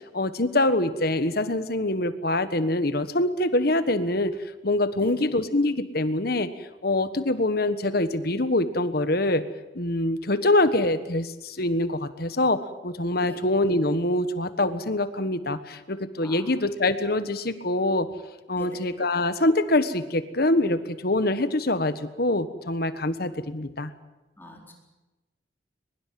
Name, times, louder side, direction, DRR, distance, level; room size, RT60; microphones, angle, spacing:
voice 1, 0.1-4.4 4.6-6.5 6.8-9.4 9.7-18.1 18.5-23.9, left 2 dB, 50° left, 12 dB, 1.4 m, -24 dB
voice 2, 24.4-24.7, left 1 dB, 10° left, 1 dB, 4.3 m, -43 dB
23.0 x 21.0 x 7.7 m, 1.1 s
head